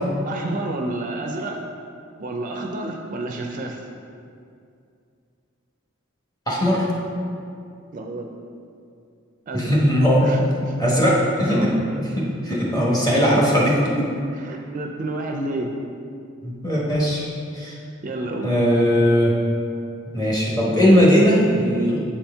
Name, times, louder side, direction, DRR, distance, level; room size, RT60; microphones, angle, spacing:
voice 1, 0.3-1.6 2.2-3.9 7.9-8.3 9.5-9.7 10.2-10.8 11.5-12.0 14.3-15.7 18.0-18.6, right 2 dB, 40° right, 2 dB, 0.4 m, -30 dB
voice 2, 6.5-6.8 9.5-10.2 10.8-11.6 12.2-14.1 16.4-17.2 17.5-17.8 18.4-19.3 20.1-22.0, equal, 20° left, -5 dB, 1.1 m, -19 dB
7.2 x 4.3 x 3.4 m, 2.4 s
head